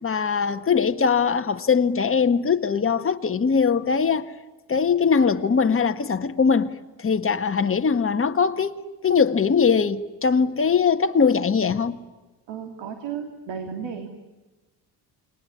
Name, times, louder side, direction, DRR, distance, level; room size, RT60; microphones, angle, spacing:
voice 1, 0.0-4.3 4.7-12.0, left 6 dB, 30° left, 1.7 m, -21 dB
voice 2, 12.5-14.1, right 7 dB, 85° right, 3.2 m, -33 dB
29.0 x 21.5 x 9.8 m
cardioid pair, 105°, 42 cm